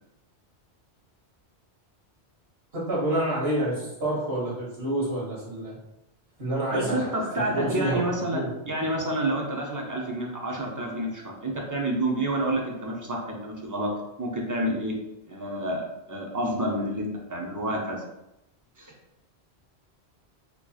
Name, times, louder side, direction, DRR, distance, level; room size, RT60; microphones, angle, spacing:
voice 1, 2.7-5.8 6.4-7.1 7.5-8.4, right 1 dB, 65° right, -7 dB, 1.9 m, -28 dB
voice 2, 6.7-13.9 14.2-14.9 15.3-18.0 18.8-18.9, right 1 dB, 25° right, -1 dB, 0.5 m, -29 dB
4.4 x 2.9 x 2.4 m, 0.89 s
omnidirectional pair, 1.1 m